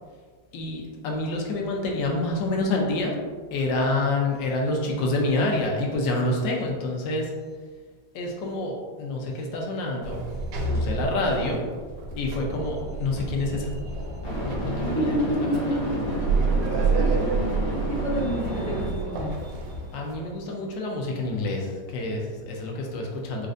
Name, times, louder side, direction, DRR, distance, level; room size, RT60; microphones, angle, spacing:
voice 1, 0.5-3.2 3.5-7.3 8.1-10.2 10.7-11.6 12.2-13.7 14.4-15.2 15.5-15.9 19.9-23.5, left 2 dB, 75° left, 0 dB, 1.3 m, -27 dB
sound 1, 9.4-9.5 14.2-18.9, right 1 dB, 55° left, 0.9 m, -31 dB
Sliding door, 10.0-20.2, right 3 dB, 80° right, 1.4 m, -29 dB
voice 2, 14.8-15.4 17.0-19.3, equal, 50° right, -10 dB, 0.5 m, -30 dB
4.3 x 2.4 x 2.5 m, 1.5 s
omnidirectional pair, 2.2 m